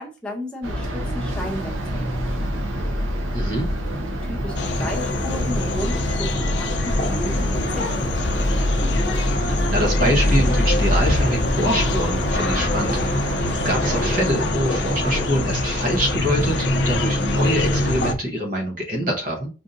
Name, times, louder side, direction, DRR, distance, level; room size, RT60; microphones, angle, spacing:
voice 1, 0.0-2.6 3.9-9.0, left 1 dB, 5° left, -1 dB, 0.8 m, -34 dB
sound 1, 0.6-14.2, equal, 85° right, 0.8 m, -25 dB
voice 2, 3.3-3.7 9.4-13.4 13.6-19.5, equal, 40° right, 1 dB, 0.8 m, -25 dB
sound 2, 4.6-18.1, left 2 dB, 55° left, 0.5 m, -24 dB
5.3 x 2.5 x 2.5 m, 0.33 s
head